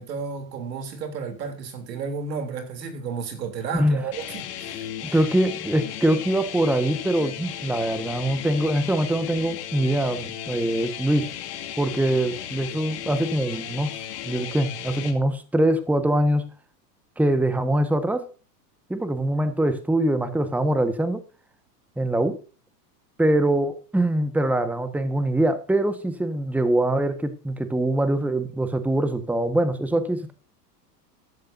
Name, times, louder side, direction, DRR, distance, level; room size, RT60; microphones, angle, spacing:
voice 1, 0.0-5.2, right 5 dB, 80° right, 3.4 m, -33 dB
sound 1, 4.1-15.1, left 11 dB, 70° left, 2.5 m, -35 dB
voice 2, 5.1-11.3 11.8-16.5 17.2-18.3 18.9-21.2 22.0-22.4 23.2-30.3, right 1 dB, 5° right, 1.4 m, -23 dB
14.5 x 11.5 x 2.7 m
hypercardioid pair, 105°, 49 cm